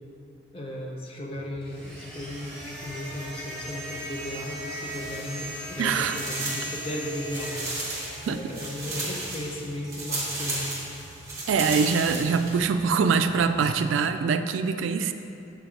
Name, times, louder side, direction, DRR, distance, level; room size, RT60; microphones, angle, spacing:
voice 1, 0.5-7.7 8.3-10.9, left 1 dB, 30° left, 0 dB, 0.6 m, -35 dB
Boat Water vehicle, 1.3-13.8, right 1 dB, 35° right, 0.8 m, -49 dB
sound 1, 1.6-9.0, equal, 5° left, 1.5 m, -39 dB
sound 2, 4.8-5.6 5.9-12.6, right 2 dB, 15° right, 1.3 m, -34 dB
voice 2, 5.8-6.2 8.3-8.4 11.5-15.1, right 5 dB, 80° right, 9 dB, 0.3 m, -24 dB
7.2 x 3.9 x 4.5 m, 2.7 s
head